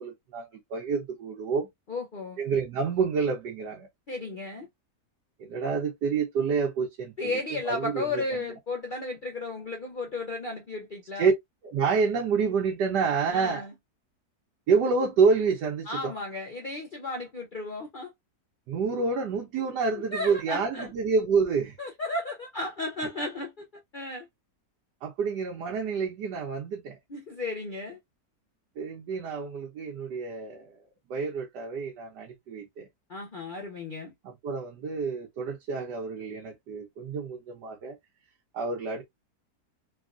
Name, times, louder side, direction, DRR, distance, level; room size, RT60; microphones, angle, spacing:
voice 1, 0.0-1.7 2.4-3.9 5.4-7.3 7.7-8.0 11.2-11.3 11.7-13.6 14.7-16.1 18.7-21.7 25.0-27.0 28.8-30.8 31.1-32.9 34.2-38.0 38.5-39.0, right 5 dB, 85° right, 1.5 m, -28 dB
voice 2, 1.9-2.4 4.1-4.7 7.2-11.3 13.3-13.7 15.9-18.1 20.1-20.9 21.8-24.3 27.1-28.0 33.1-34.1, left 2 dB, 70° left, 0.4 m, -34 dB
3.5 x 2.3 x 2.4 m
omnidirectional pair, 1.8 m